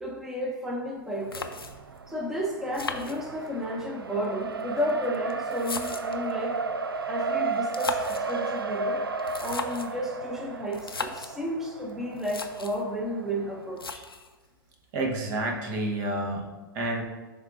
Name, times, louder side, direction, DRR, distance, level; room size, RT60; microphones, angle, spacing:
voice 1, 0.0-1.7 2.1-6.6 7.1-9.0 9.4-14.1, equal, 5° right, 0 dB, 0.8 m, -32 dB
sound 1, 0.9-1.0 1.3-2.0 2.7-3.7 4.6-6.3 7.6-8.3 9.2-10.0 10.7-11.4 11.9-12.0 12.2-12.8 13.8-14.4, left 4 dB, 90° left, 0.5 m, -37 dB
Race car auto racing, 1.2-13.8, right 4 dB, 85° right, 0.4 m, -34 dB
voice 2, 14.9-16.5 16.7-17.0, right 1 dB, 45° right, 2 dB, 1.1 m, -29 dB
10.5 x 3.6 x 2.5 m, 1.2 s
figure-of-eight pair, 95°, 12 cm